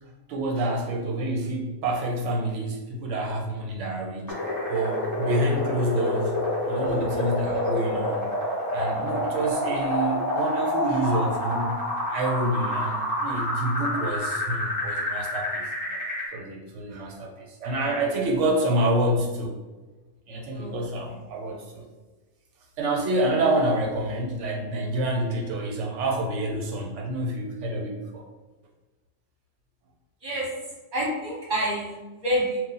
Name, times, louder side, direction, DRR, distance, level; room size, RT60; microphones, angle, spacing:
voice 1, 0.0-4.4 4.7-6.4 6.7-8.3 8.7-11.8 12.1-15.7 16.3-19.5 20.3-21.9 22.8-28.3, right 1 dB, 70° right, 1 dB, 1.0 m, -27 dB
filtered bass, 4.3-16.3, left 1 dB, 15° left, 1.0 m, -28 dB
voice 2, 6.8-7.2 20.5-20.8 30.2-30.5 30.9-32.6, equal, 40° right, -6 dB, 1.4 m, -28 dB
2.6 x 2.4 x 3.8 m, 1.2 s
omnidirectional pair, 1.3 m